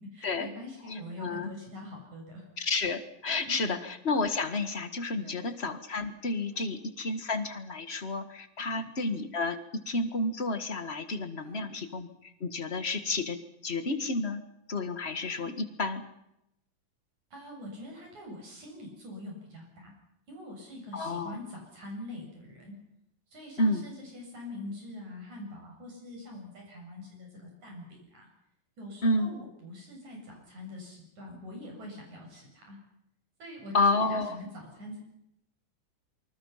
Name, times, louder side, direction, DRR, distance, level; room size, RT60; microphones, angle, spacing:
voice 1, 0.0-2.4 3.4-3.8 5.2-5.4 6.5-6.7 8.7-8.9 11.4-11.7 15.3-15.5 17.3-19.9 20.3-22.8 23.3-28.3 28.8-32.8 33.4-35.0, left 1 dB, 70° right, 0 dB, 8.9 m, -44 dB
voice 2, 0.9-1.5 2.6-13.4 13.6-14.4 14.7-16.0 20.9-21.4 23.6-23.8 29.0-29.3 33.7-34.4, left 2 dB, 30° left, 9 dB, 1.4 m, -30 dB
27.5 x 25.0 x 5.8 m, 0.82 s
omnidirectional pair, 3.4 m